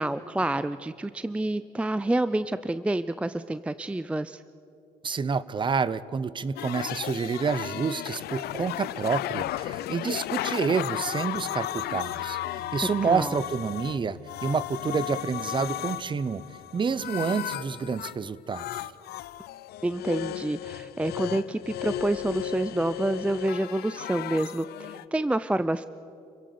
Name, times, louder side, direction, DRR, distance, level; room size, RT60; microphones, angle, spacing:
voice 1, 0.0-4.4 13.0-13.4 19.8-25.9, right 1 dB, 5° right, 14 dB, 0.4 m, -28 dB
voice 2, 5.0-16.4 16.7-18.7, right 5 dB, 30° right, 18 dB, 0.8 m, -28 dB
sound 1, 6.6-14.0 14.3-18.2 18.5-25.0, left 14 dB, 70° left, 0.6 m, -35 dB
sound 2, 11.8-19.9, left 4 dB, 55° right, 5.7 m, -53 dB
29.5 x 16.5 x 7.0 m, 2.7 s
cardioid pair, 110°, 17 cm